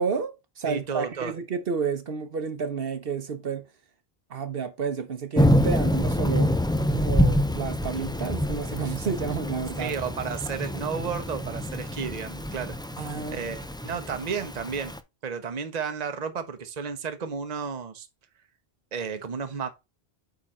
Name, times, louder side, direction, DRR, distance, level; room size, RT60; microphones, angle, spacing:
voice 1, 0.0-3.6 4.3-6.5 6.9-9.9 13.0-13.5, right 5 dB, 70° right, 1.1 m, -31 dB
voice 2, 0.6-1.3 9.8-12.7 13.3-14.9 15.2-18.1 18.9-19.7, right 6 dB, 45° right, 1.0 m, -32 dB
Thunder / Rain, 5.4-15.0, equal, 5° left, 0.4 m, -26 dB
8.8 x 4.0 x 4.3 m
omnidirectional pair, 1.0 m